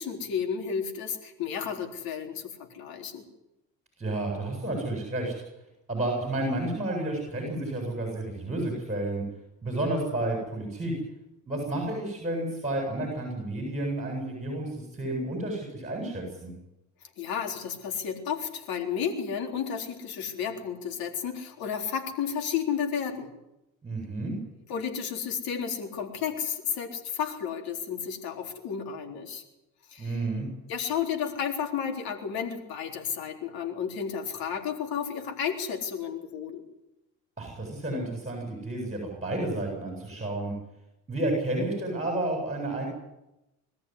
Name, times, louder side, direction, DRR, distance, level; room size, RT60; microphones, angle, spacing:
voice 1, 0.0-3.2 17.2-23.3 24.7-29.4 29.9-30.1 30.7-36.6, left 7 dB, 70° left, 3 dB, 4.0 m, -32 dB
voice 2, 4.0-5.3 5.9-9.2 9.6-10.9 11.4-16.5 23.8-24.4 30.0-30.5 37.4-40.5 41.1-42.9, right 1 dB, 20° right, 0 dB, 7.9 m, -31 dB
22.5 x 14.0 x 9.6 m, 0.91 s
supercardioid pair, 90°, 37 cm